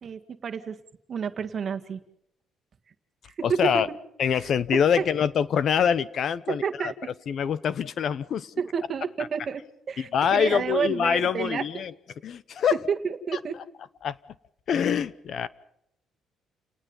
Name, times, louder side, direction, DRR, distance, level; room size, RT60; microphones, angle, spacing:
voice 1, 0.0-0.8 1.1-2.0 3.2-3.6 4.3-4.5 5.0-5.1 6.5-6.9 8.6-9.6 9.9-11.8 12.9-13.6, right 6 dB, 35° right, 9 dB, 1.8 m, -30 dB
voice 2, 3.4-3.9 4.2-6.9 7.3-8.5 10.0-11.9 12.2-12.8 13.3-13.4 14.0-14.2 14.7-15.5, left 7 dB, 45° left, 17 dB, 0.9 m, -25 dB
29.5 x 19.5 x 5.5 m, 0.78 s
cardioid pair, 170°, 0 cm